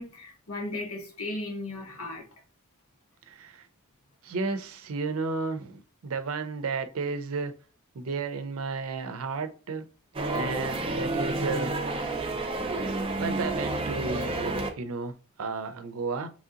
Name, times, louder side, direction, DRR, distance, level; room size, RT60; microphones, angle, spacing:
voice 1, 0.0-2.3, left 2 dB, 80° left, 1.2 m, -36 dB
voice 2, 3.3-3.7 4.2-7.5 7.9-9.9 10.3-11.8 13.2-16.3, right 4 dB, 85° right, 0.5 m, -33 dB
sound 1, 10.1-14.7, right 2 dB, 25° right, 0.4 m, -30 dB
3.1 x 2.8 x 3.7 m
head